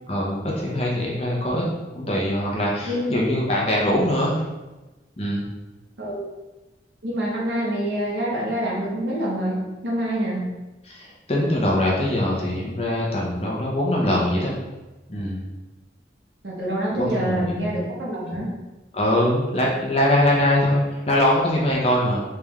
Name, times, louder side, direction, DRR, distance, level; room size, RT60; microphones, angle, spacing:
voice 1, 0.1-1.7 1.9-4.4 5.2-5.4 10.9-14.5 15.1-15.4 17.0-17.5 18.9-22.2, left 1 dB, 35° left, -3 dB, 0.8 m, -22 dB
voice 2, 2.9-3.3 6.0-6.3 7.0-10.5 16.4-18.5, right 1 dB, 80° right, -5 dB, 1.3 m, -26 dB
3.4 x 3.2 x 3.5 m, 1.1 s
head